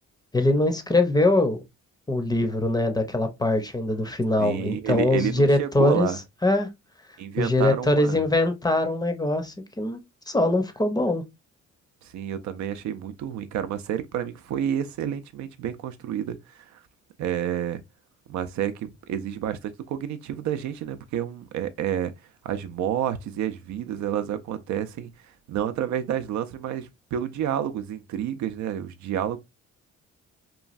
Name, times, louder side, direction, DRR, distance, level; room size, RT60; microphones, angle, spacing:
voice 1, 0.3-1.6 2.1-6.1 6.4-6.7 7.4-10.0 10.3-11.2, left 2 dB, 15° left, 0.6 m, -22 dB
voice 2, 4.4-6.2 7.2-8.2 12.0-16.8 17.2-17.8 18.3-22.1 22.4-25.1 25.5-29.4, right 10 dB, 70° right, 0.4 m, -29 dB
3.0 x 2.3 x 2.4 m
cardioid pair, 90°, 30 cm